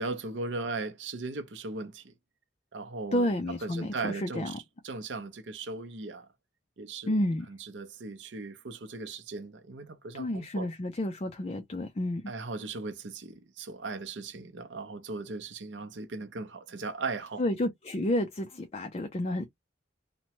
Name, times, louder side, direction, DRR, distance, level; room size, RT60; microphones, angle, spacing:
voice 1, 0.0-2.1 2.7-3.3 3.6-4.5 4.8-6.3 6.8-7.2 7.5-10.7 12.3-17.4, right 3 dB, 70° right, 0.6 m, -38 dB
voice 2, 3.1-4.5 7.1-7.5 10.1-12.3 17.4-19.4, left 1 dB, 35° left, 0.4 m, -30 dB
2.9 x 2.1 x 2.9 m
head